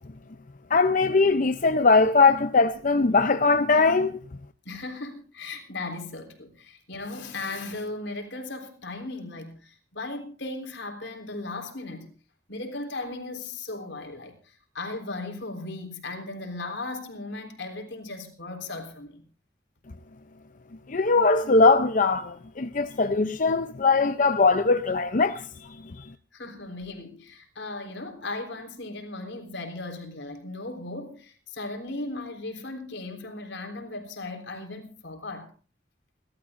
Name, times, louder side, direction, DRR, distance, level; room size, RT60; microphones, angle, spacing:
voice 1, 0.7-4.1 20.9-25.7, left 3 dB, 45° left, 0.7 m, -21 dB
voice 2, 4.6-12.1 12.5-19.2 26.3-35.5, left 2 dB, 85° left, 3.9 m, -37 dB
29.5 x 13.0 x 2.6 m
head